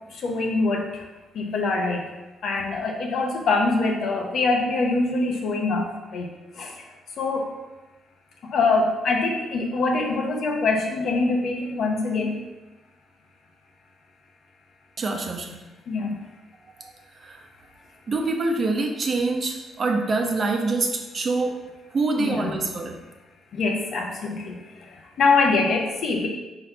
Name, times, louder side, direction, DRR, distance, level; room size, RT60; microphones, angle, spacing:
voice 1, 0.1-1.1 1.3-2.0 2.4-6.9 7.2-7.5 8.4-12.4 15.9-16.1 22.2-22.5 23.5-26.3, left 3 dB, 65° left, 1 dB, 1.1 m, -24 dB
voice 2, 15.0-15.6 16.8-16.9 17.2-17.4 18.1-21.6 21.9-22.9, right 3 dB, 45° right, 2 dB, 0.9 m, -25 dB
4.3 x 4.0 x 5.6 m, 1.1 s
cardioid pair, 90°, 0 cm